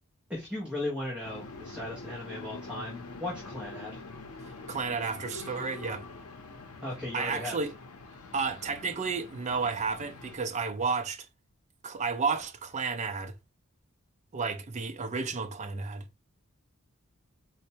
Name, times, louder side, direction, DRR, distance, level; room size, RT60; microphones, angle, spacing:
voice 1, 0.3-4.0 6.8-7.6, left 1 dB, 5° right, 0.8 m, -37 dB
sound 1, 1.2-10.4, left 3 dB, 80° left, 0.6 m, -45 dB
voice 2, 4.7-6.0 7.1-7.7 8.3-11.3 11.8-13.3 14.3-16.0, right 5 dB, 30° right, 0.5 m, -32 dB
4.2 x 2.1 x 2.8 m
head